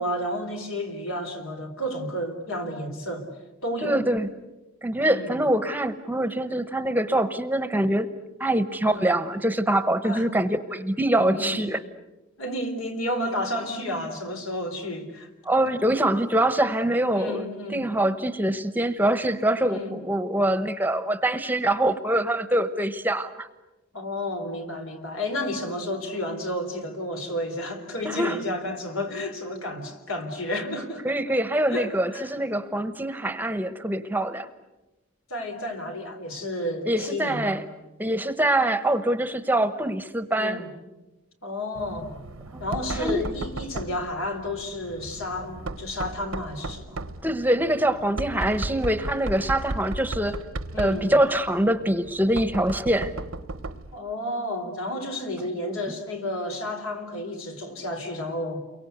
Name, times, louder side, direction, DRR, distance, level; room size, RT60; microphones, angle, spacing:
voice 1, 0.0-3.3 3.6-4.0 5.0-5.4 8.8-9.1 10.0-10.3 11.3-11.7 12.4-15.3 17.1-17.8 19.6-20.0 23.9-31.4 31.7-32.3 35.3-37.6 40.3-40.7 41.4-42.1 42.6-47.0 50.7-51.1 53.9-58.6, left 1 dB, 80° left, 3.9 m, -31 dB
voice 2, 3.8-4.3 4.8-8.1 8.4-11.8 15.4-17.5 17.7-23.5 28.0-28.4 31.0-34.5 36.9-37.6 38.0-40.6 42.5-42.6 43.0-43.3 47.2-50.4 50.8-53.1, right 1 dB, 10° right, 1.0 m, -24 dB
Knock, 41.7-54.0, right 2 dB, 80° right, 1.0 m, -36 dB
29.5 x 23.5 x 8.1 m
head